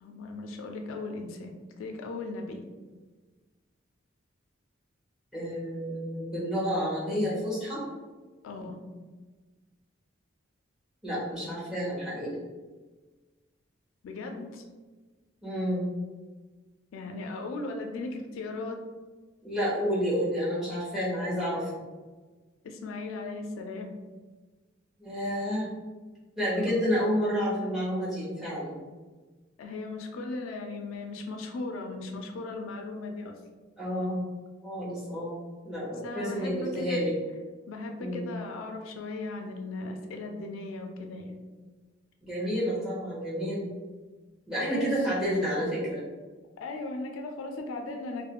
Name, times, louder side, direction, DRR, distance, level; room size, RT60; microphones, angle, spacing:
voice 1, 0.0-2.6 8.4-8.8 14.0-14.6 16.9-18.8 22.6-23.9 26.6-26.9 29.6-33.4 36.0-37.0 37.7-41.4 44.6-45.1 46.6-48.3, left 2 dB, 85° left, 3 dB, 0.3 m, -37 dB
voice 2, 5.3-7.8 11.0-12.4 15.4-15.9 19.4-21.7 25.0-25.7 26.4-28.8 33.8-34.2 34.6-35.4 35.6-37.1 38.0-38.3 42.2-43.7 44.5-46.0, equal, ahead, -7 dB, 0.8 m, -30 dB
2.4 x 2.1 x 2.8 m, 1.3 s
head